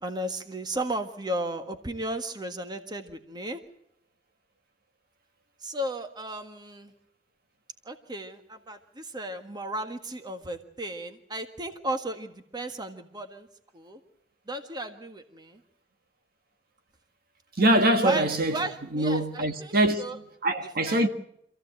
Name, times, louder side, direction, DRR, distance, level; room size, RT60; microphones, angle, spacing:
voice 1, 0.0-3.6 5.6-6.9 7.8-13.5 13.7-14.0 14.5-15.6 18.0-18.2 18.5-20.2 20.8-21.0, right 1 dB, 25° right, 1.6 m, -34 dB
voice 2, 17.6-18.6 18.9-21.1, right 1 dB, 55° right, 1.7 m, -24 dB
26.5 x 15.5 x 7.8 m
head